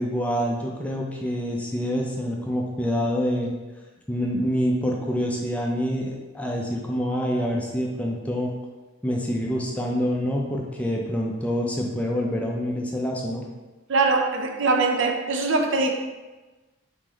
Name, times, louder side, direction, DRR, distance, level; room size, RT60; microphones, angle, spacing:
voice 1, 0.0-3.5 4.1-8.5 9.0-13.4, equal, 5° left, -1 dB, 0.4 m, -26 dB
voice 2, 13.9-15.9, right 3 dB, 70° right, 3 dB, 0.5 m, -22 dB
4.1 x 3.1 x 3.7 m, 1.2 s
head